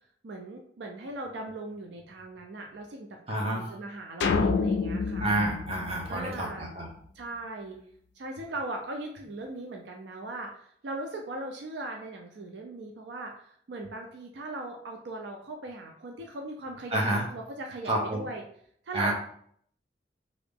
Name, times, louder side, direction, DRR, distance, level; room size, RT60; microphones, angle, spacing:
voice 1, 0.2-5.3 6.1-6.7 7.1-7.8 8.2-18.4 18.8-19.1, right 2 dB, 75° right, 2 dB, 0.4 m, -39 dB
voice 2, 3.3-3.7 5.2-6.9 16.9-17.2 17.8-18.2 18.9-19.1, right 1 dB, 35° right, -1 dB, 0.8 m, -29 dB
sound 1, 4.2-6.7, left 4 dB, 75° left, 0.3 m, -28 dB
2.8 x 2.5 x 3.5 m, 0.64 s
head